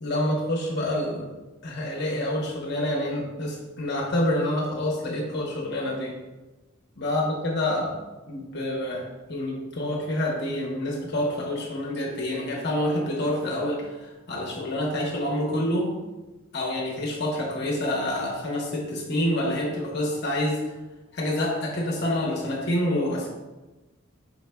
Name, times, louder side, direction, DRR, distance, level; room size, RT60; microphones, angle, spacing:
voice 1, 0.0-1.2 1.6-6.1 7.0-7.9 8.3-15.9 16.5-20.6 21.1-23.3, left 1 dB, 55° left, -2 dB, 0.9 m, -27 dB
4.8 x 4.8 x 2.2 m, 1.1 s
head